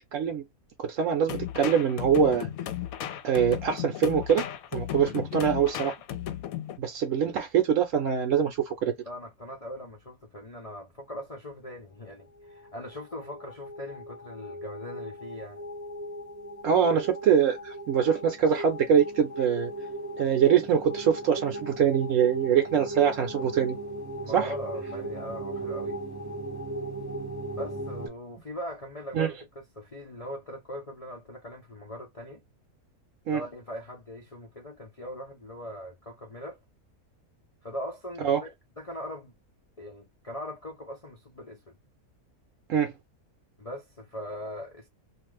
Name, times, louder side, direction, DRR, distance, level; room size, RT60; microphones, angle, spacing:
voice 1, 0.1-0.4 0.8-2.5 3.2-4.4 4.7-5.9 6.8-8.9 16.6-19.7 20.2-23.8 24.3-24.5 29.1-29.3 33.3-33.4 38.2-38.4 42.7-42.9, right 8 dB, 65° right, 0.9 m, -24 dB
sound 1, 1.3-6.8, left 11 dB, 75° left, 1.0 m, -35 dB
voice 2, 9.0-15.7 24.2-26.0 27.5-32.4 33.3-36.6 37.6-38.5 38.8-39.3 39.8-41.8 43.6-44.9, equal, 55° left, 0.3 m, -40 dB
sound 2, 12.4-28.1, right 1 dB, 15° right, 0.7 m, -37 dB
2.5 x 2.3 x 3.2 m
omnidirectional pair, 1.6 m